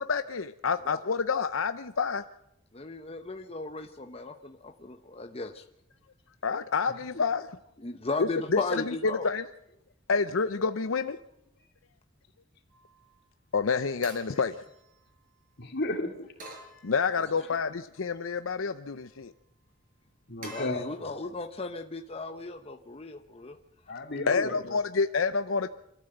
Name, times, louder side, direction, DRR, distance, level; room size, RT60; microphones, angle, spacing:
voice 1, 0.1-2.2 6.4-7.5 8.5-8.6 9.2-9.4 10.1-11.2 13.5-14.5 16.8-19.3 24.3-25.7, left 5 dB, 85° left, 11 dB, 0.7 m, -28 dB
voice 2, 2.7-5.6 7.8-9.3 17.2-17.3 20.5-23.6, left 3 dB, 30° left, 4 dB, 0.9 m, -36 dB
sound 1, 12.7-13.2 14.0-15.4 16.4-17.5 18.0-18.7 20.4-20.6, right 2 dB, 45° right, 6.0 m, -49 dB
voice 3, 15.6-16.2 17.4-17.6 20.3-21.3 23.9-24.8, left 2 dB, 60° left, 4 dB, 3.0 m, -34 dB
25.5 x 14.0 x 8.0 m, 0.82 s
head